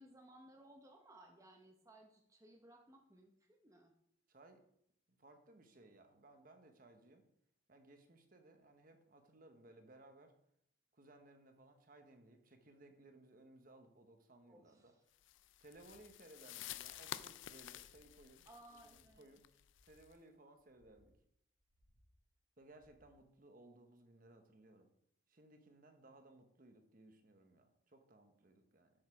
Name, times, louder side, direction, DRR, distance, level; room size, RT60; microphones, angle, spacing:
voice 1, 0.0-3.9 14.5-15.0 18.5-19.3, right 1 dB, 15° right, 2 dB, 0.8 m, -61 dB
voice 2, 4.3-4.6 5.1-7.2 7.7-10.3 10.9-14.9 15.6-19.4 19.8-21.1 22.6-24.9 25.3-28.9, right 2 dB, 45° right, 6 dB, 1.0 m, -62 dB
sound 1, 15.2-20.1, left 12 dB, 70° left, 0.4 m, -51 dB
sound 2, 15.6-16.1 16.5-17.1 17.5-18.1 18.5-19.1 19.5-20.1 20.5-21.1 21.5-22.1 22.5-23.1, equal, 50° left, 3.1 m, -74 dB
7.7 x 6.5 x 4.8 m, 0.72 s
head